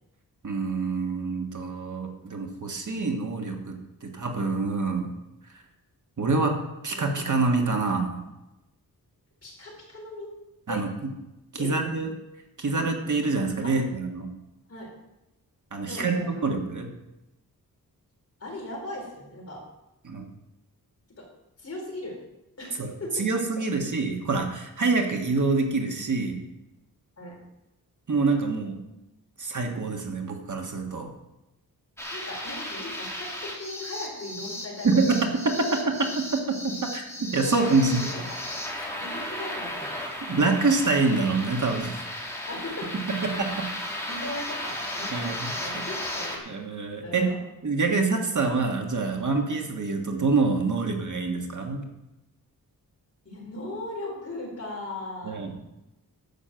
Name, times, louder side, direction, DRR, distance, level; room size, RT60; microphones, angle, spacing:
voice 1, 0.4-3.7 4.0-5.1 5.5-5.6 6.2-6.6 6.8-8.2 10.7-10.9 11.6-12.1 12.6-14.3 15.7-16.9 20.0-20.3 22.8-22.9 23.2-26.4 28.1-28.8 29.4-31.1 34.8-38.0 40.2-42.0 43.2-43.7 45.1-45.7 46.5-47.3 47.6-51.8 55.2-55.5, right 3 dB, 55° right, 2 dB, 1.6 m, -26 dB
voice 2, 9.4-10.3 10.7-10.8 11.6-11.8 13.6-13.7 14.7-14.9 15.8-16.5 18.4-19.6 21.2-21.3 21.6-22.1 22.6-23.1 27.2-27.4 32.1-34.9 35.3-35.4 37.4-38.4 39.0-40.0 42.5-42.9 44.1-45.1 45.5-46.4 47.0-47.4 53.2-55.4, left 1 dB, 40° left, -2 dB, 4.3 m, -38 dB
sound 1, 32.0-46.4, left 1 dB, 5° left, 2.5 m, -35 dB
11.0 x 6.2 x 7.7 m, 0.96 s
wide cardioid pair, 125°, 37 cm